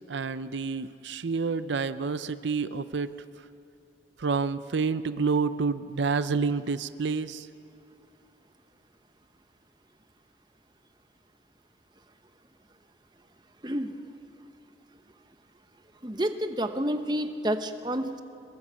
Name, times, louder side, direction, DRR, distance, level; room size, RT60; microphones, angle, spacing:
voice 1, 0.1-3.1 4.2-7.5, right 4 dB, 85° right, 13 dB, 0.6 m, -28 dB
voice 2, 13.6-13.9 16.0-18.2, right 1 dB, 25° right, 8 dB, 0.9 m, -29 dB
23.0 x 20.5 x 7.6 m, 2.5 s
head